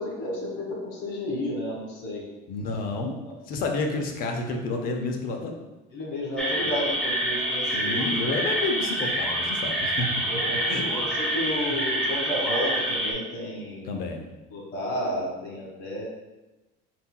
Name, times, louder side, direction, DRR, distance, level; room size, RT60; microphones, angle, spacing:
voice 1, 0.0-2.2 5.9-8.2 10.3-13.9 14.5-16.1, left 1 dB, 85° left, -2 dB, 1.5 m, -32 dB
voice 2, 2.5-3.1 3.5-5.6 6.6-6.7 7.7-10.1 10.7-10.8 11.7-11.8 13.9-14.2, left 3 dB, 45° left, 4 dB, 0.6 m, -30 dB
sound 1, 6.4-13.1, right 1 dB, 5° left, 0.5 m, -27 dB
4.7 x 4.2 x 2.2 m, 1.1 s
cardioid pair, 165°, 21 cm